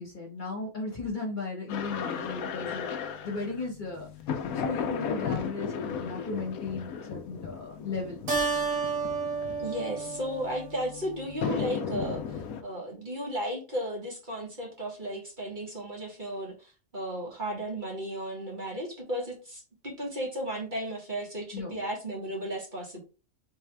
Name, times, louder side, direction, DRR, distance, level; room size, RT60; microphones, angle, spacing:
voice 1, 0.0-2.9 3.2-4.1 4.4-8.2 21.5-21.8, left 3 dB, 35° left, 1.3 m, -36 dB
sound 1, 1.7-12.6, left 7 dB, 80° left, 1.1 m, -36 dB
Keyboard (musical), 8.3-11.2, right 4 dB, 65° right, 1.4 m, -31 dB
voice 2, 9.6-23.0, right 1 dB, 35° right, 1.7 m, -35 dB
4.0 x 3.6 x 3.3 m
omnidirectional pair, 1.5 m